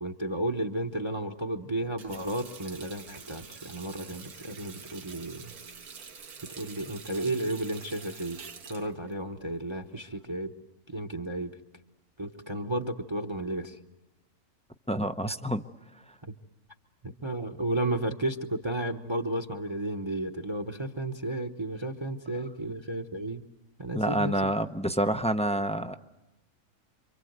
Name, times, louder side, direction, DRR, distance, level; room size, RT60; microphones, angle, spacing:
voice 1, 0.0-5.5 6.4-8.4 8.7-10.5 10.9-11.6 12.2-13.8 17.2-23.4 23.8-24.5, right 1 dB, 20° right, 7 dB, 0.9 m, -33 dB
Water tap faucet, 1.8-10.2, right 5 dB, 80° right, 1.8 m, -47 dB
voice 2, 14.9-15.6 23.9-26.0, right 1 dB, 5° left, 8 dB, 0.5 m, -28 dB
28.0 x 25.0 x 8.0 m, 1.0 s
omnidirectional pair, 1.6 m